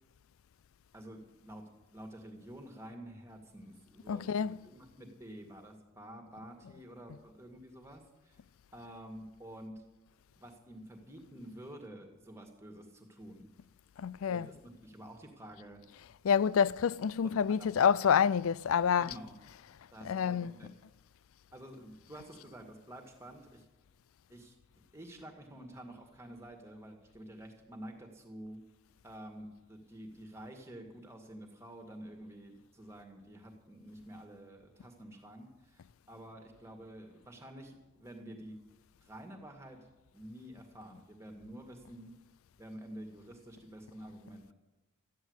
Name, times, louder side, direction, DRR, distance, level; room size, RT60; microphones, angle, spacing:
voice 1, 0.9-1.6 1.9-8.4 8.7-9.8 10.4-13.5 14.3-15.8 17.2-17.7 19.0-19.4 19.9-20.7 21.5-23.7 24.3-24.6 24.9-28.6 29.0-38.6 39.0-39.9 40.1-42.1 42.6-44.5, right 1 dB, 10° right, 2.0 m, -49 dB
voice 2, 4.1-4.7 14.0-14.5 16.2-19.1 19.5-19.6 20.0-20.7, left 7 dB, 80° left, 0.4 m, -28 dB
14.0 x 10.5 x 8.0 m
head